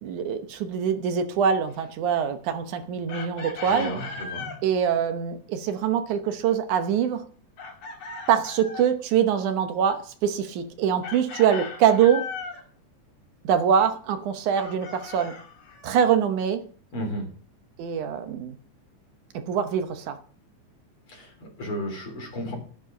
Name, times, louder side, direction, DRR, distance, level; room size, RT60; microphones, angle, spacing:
voice 1, 0.0-3.9 4.6-7.2 8.3-12.3 13.4-15.3 15.8-16.6 17.8-18.6 19.3-20.2, right 8 dB, 80° right, 8 dB, 2.5 m, -24 dB
Chicken rooster, 3.1-4.6 7.6-8.9 11.0-12.6 14.5-16.1, left 5 dB, 70° left, 3.5 m, -38 dB
voice 2, 3.6-4.5 16.9-17.3 21.1-22.6, equal, 45° left, 1 dB, 4.4 m, -33 dB
12.5 x 9.2 x 5.1 m, 0.43 s
omnidirectional pair, 3.5 m